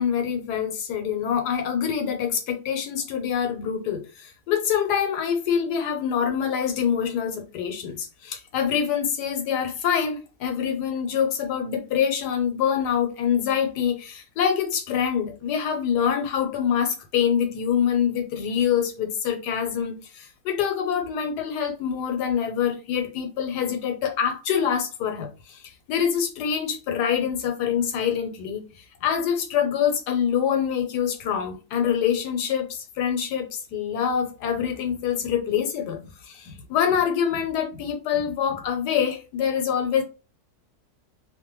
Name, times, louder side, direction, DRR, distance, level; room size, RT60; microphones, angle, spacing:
voice 1, 0.0-25.6 25.9-28.6 29.0-40.0, left 8 dB, 85° left, 1.3 m, -25 dB
2.9 x 2.1 x 3.0 m
omnidirectional pair, 1.7 m